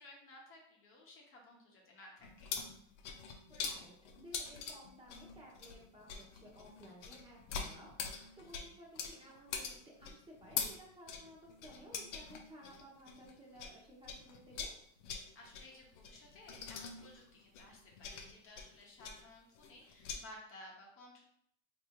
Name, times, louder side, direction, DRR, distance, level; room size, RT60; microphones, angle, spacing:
voice 1, 0.0-2.5 15.1-21.2, left 1 dB, 35° left, -2 dB, 0.9 m, -56 dB
sound 1, 2.2-13.8 14.0-20.2, left 6 dB, 75° left, 0.7 m, -44 dB
voice 2, 3.5-14.7, equal, 15° right, -4 dB, 0.9 m, -56 dB
3.4 x 2.7 x 2.9 m, 0.71 s
supercardioid pair, 110°, 36 cm